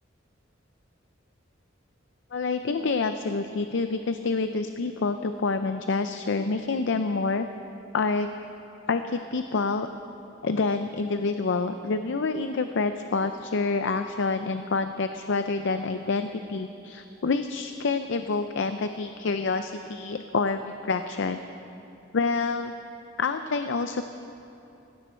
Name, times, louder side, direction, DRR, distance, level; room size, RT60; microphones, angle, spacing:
voice 1, 2.3-7.5 7.9-8.3 8.9-9.9 10.4-21.4 22.1-22.7 23.2-24.0, left 4 dB, 65° left, 9 dB, 0.5 m, -27 dB
18.5 x 17.0 x 4.4 m, 2.9 s
head